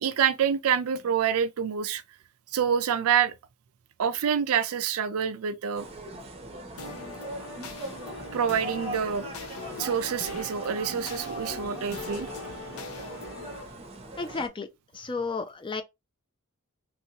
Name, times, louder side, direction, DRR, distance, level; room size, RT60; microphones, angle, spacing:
voice 1, 0.0-2.0 2.5-3.3 4.0-5.9 8.3-9.3 9.8-12.3, right 8 dB, 70° right, 0.4 m, -26 dB
sound 1, 5.7-14.5, right 1 dB, 25° right, 0.6 m, -41 dB
sound 2, 6.8-13.6, left 3 dB, 70° left, 0.6 m, -40 dB
voice 2, 14.2-14.7 14.9-15.8, left 4 dB, 20° left, 0.4 m, -32 dB
3.0 x 2.7 x 2.8 m
head